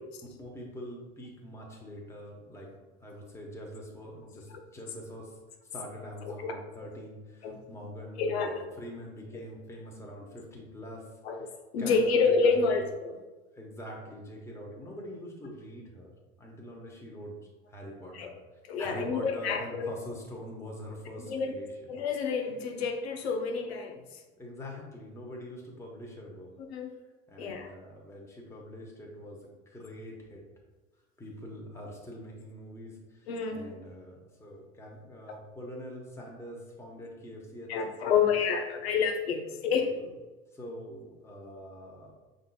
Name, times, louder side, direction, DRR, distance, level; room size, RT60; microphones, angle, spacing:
voice 1, 0.4-2.7 3.0-5.4 5.7-11.1 11.8-12.8 13.5-16.1 16.4-17.4 17.7-18.3 18.8-21.7 24.4-26.5 27.3-30.4 31.2-37.7 38.2-38.4 39.8-40.1 40.5-42.1, equal, 10° left, -1 dB, 1.1 m, -44 dB
voice 2, 8.2-8.7 11.2-11.5 11.7-13.2 18.1-18.3 18.7-19.9 21.2-21.6 21.9-24.2 26.7-26.9 27.4-27.7 33.3-33.7 35.3-35.4 37.7-40.0, left 5 dB, 80° left, 4 dB, 0.7 m, -28 dB
5.4 x 3.8 x 2.3 m, 1.2 s
hypercardioid pair, 75°, 31 cm